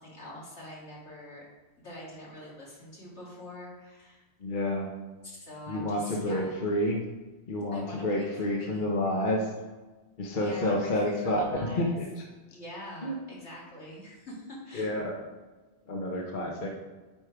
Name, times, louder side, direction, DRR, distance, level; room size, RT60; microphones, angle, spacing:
voice 1, 0.0-1.4 1.8-4.2 5.2-6.6 7.7-8.8 10.4-11.9 12.5-14.9, left 1 dB, 80° left, -5 dB, 2.2 m, -44 dB
voice 2, 4.4-4.9 5.7-7.0 7.5-9.5 10.2-11.4 11.8-12.2 13.0-13.2 14.7-15.1 15.9-16.7, left 1 dB, 50° left, 0 dB, 1.0 m, -29 dB
8.8 x 3.4 x 4.7 m, 1.3 s
omnidirectional pair, 1.1 m